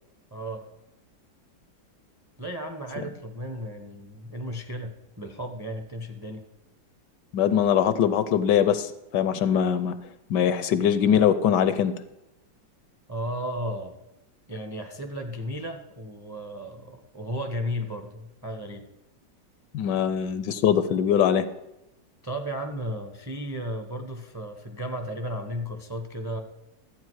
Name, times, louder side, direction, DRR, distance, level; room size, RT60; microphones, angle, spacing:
voice 1, 0.3-0.6 2.4-6.4 13.1-13.9 14.5-18.9 22.2-26.4, equal, 15° right, 5 dB, 0.6 m, -34 dB
voice 2, 7.3-10.0 10.3-12.0 19.7-21.5, left 9 dB, 75° left, 12 dB, 1.1 m, -22 dB
13.0 x 8.4 x 4.7 m, 0.93 s
omnidirectional pair, 2.0 m